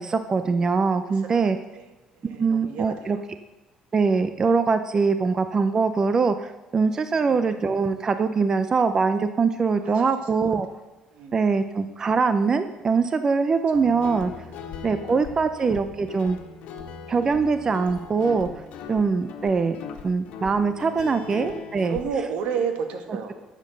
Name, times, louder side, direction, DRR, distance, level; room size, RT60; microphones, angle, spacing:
voice 1, 0.0-1.6 2.4-3.2 3.9-10.7 11.3-14.3 14.8-16.4 17.1-18.5 18.9-19.8 20.0-22.0, right 4 dB, 30° right, 10 dB, 0.6 m, -23 dB
voice 2, 1.0-1.9 2.2-3.2 7.2-7.4 9.8-10.1 10.4-10.5 11.1-11.5 13.7-13.9 14.3-14.5 15.0-15.4 21.1-21.4 21.8-23.3, right 6 dB, 80° right, 5 dB, 2.0 m, -33 dB
Guitar, 13.7-22.0, left 6 dB, 80° left, 1.6 m, -39 dB
13.0 x 7.4 x 6.7 m, 1.1 s
cardioid pair, 135°, 2 cm